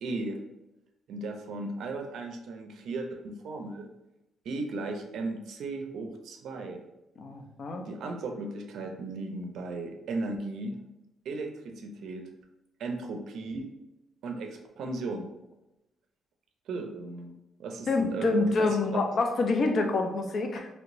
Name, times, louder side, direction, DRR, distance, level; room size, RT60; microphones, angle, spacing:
voice 1, 0.0-0.4 1.1-3.9 4.4-6.8 7.8-10.8 11.2-12.3 12.8-13.7 14.2-15.3 16.7-17.3 17.6-19.0, right 3 dB, 75° right, 4 dB, 0.4 m, -36 dB
voice 2, 7.2-7.8 17.9-20.7, left 3 dB, 50° left, 5 dB, 0.5 m, -27 dB
3.2 x 2.9 x 2.6 m, 0.94 s
cardioid pair, 90°, 0 cm